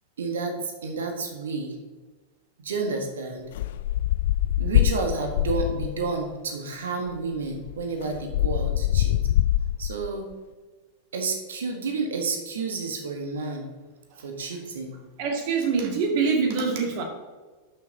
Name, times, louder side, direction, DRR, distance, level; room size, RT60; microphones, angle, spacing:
voice 1, 0.2-1.8 2.6-3.4 4.6-9.1 9.8-10.3 11.1-13.7 14.2-14.9, right 4 dB, 65° right, 4 dB, 1.7 m, -30 dB
sound 1, 3.5-6.1 7.1-7.2 7.4-10.1, left 13 dB, 55° left, 0.4 m, -24 dB
voice 2, 15.2-17.0, right 5 dB, 50° right, 2 dB, 2.3 m, -24 dB
12.0 x 6.3 x 4.0 m, 1.3 s
figure-of-eight pair, 90°, 0 cm